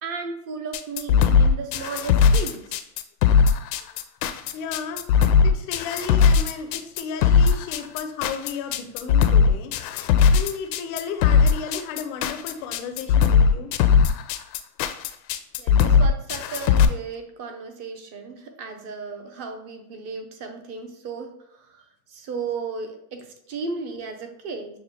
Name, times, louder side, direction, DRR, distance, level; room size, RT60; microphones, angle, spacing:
voice 1, 0.0-2.8 5.1-5.3 9.9-10.0 15.6-24.8, right 4 dB, 35° right, 6 dB, 0.6 m, -35 dB
sound 1, 0.7-16.9, left 6 dB, 85° left, 0.6 m, -18 dB
voice 2, 4.5-5.0 5.4-9.7 10.3-13.7, left 5 dB, 35° left, 7 dB, 0.4 m, -33 dB
6.3 x 2.1 x 2.8 m, 0.73 s
supercardioid pair, 130°, 48 cm